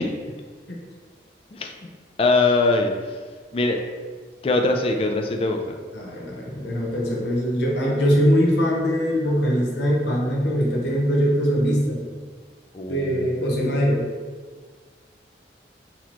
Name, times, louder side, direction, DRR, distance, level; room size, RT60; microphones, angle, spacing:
voice 1, 2.2-2.9 3.5-3.8 4.4-5.8 12.7-13.8, left 3 dB, 30° left, 3 dB, 0.3 m, -22 dB
voice 2, 5.9-12.0 12.9-14.0, equal, 80° left, -2 dB, 0.8 m, -22 dB
4.1 x 2.9 x 3.0 m, 1.5 s
head